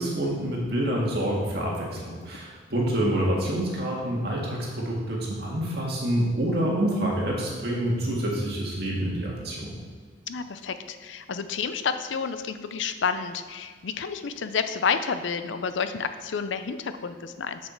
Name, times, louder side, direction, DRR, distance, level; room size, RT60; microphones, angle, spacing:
voice 1, 0.0-9.8, right 1 dB, 55° right, -3 dB, 1.9 m, -27 dB
voice 2, 10.3-17.6, left 6 dB, 80° left, 10 dB, 0.5 m, -30 dB
6.8 x 6.6 x 4.5 m, 1.5 s
head